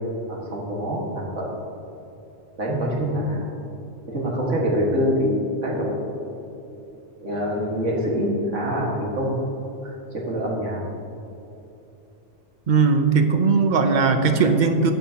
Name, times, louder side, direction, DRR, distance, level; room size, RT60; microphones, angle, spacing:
voice 1, 0.3-1.5 2.6-3.5 4.1-6.0 7.2-9.4 9.8-10.8, equal, 85° right, -3 dB, 2.1 m, -25 dB
voice 2, 12.7-14.9, right 4 dB, 50° right, 7 dB, 0.7 m, -18 dB
12.0 x 9.2 x 2.8 m, 2.9 s
omnidirectional pair, 1.2 m